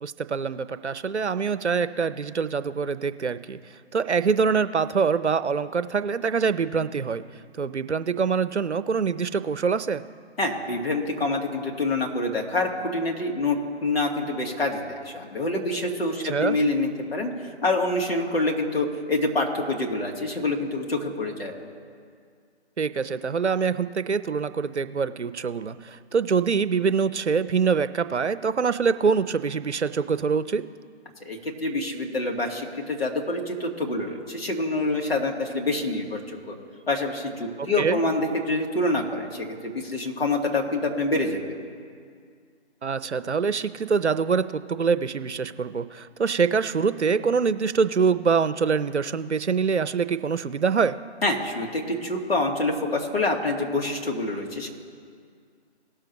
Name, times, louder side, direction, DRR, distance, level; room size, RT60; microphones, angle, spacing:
voice 1, 0.0-3.6 3.9-7.2 7.6-10.0 16.2-16.6 22.8-30.6 37.6-38.0 42.8-51.0, right 5 dB, 75° right, 13 dB, 0.7 m, -24 dB
voice 2, 10.4-17.3 17.6-21.5 31.3-36.2 36.5-36.6 36.9-41.4 51.2-54.7, left 2 dB, 55° left, 0 dB, 2.1 m, -26 dB
19.0 x 6.7 x 3.0 m, 2.1 s
figure-of-eight pair, 150°, 34 cm